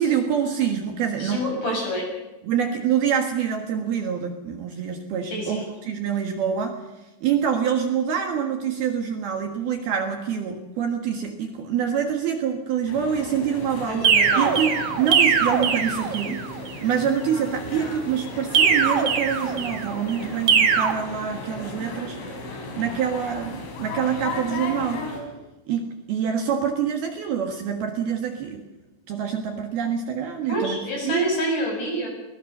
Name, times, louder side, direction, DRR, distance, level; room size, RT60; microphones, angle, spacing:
voice 1, 0.0-1.4 2.4-6.8 7.2-14.1 14.4-16.4 16.8-22.2 22.8-25.0 25.7-28.6 29.1-30.8 31.0-31.3, right 8 dB, 60° right, 4 dB, 3.1 m, -26 dB
voice 2, 1.2-2.1 5.3-5.6 13.9-14.6 30.5-32.1, equal, 40° left, 0 dB, 8.2 m, -27 dB
sound 1, 12.9-25.2, left 2 dB, 80° left, 6.7 m, -35 dB
sound 2, 14.0-16.5 18.5-19.9 20.5-20.9, right 7 dB, 90° right, 1.3 m, -21 dB
23.5 x 18.5 x 6.7 m, 1.1 s
omnidirectional pair, 5.5 m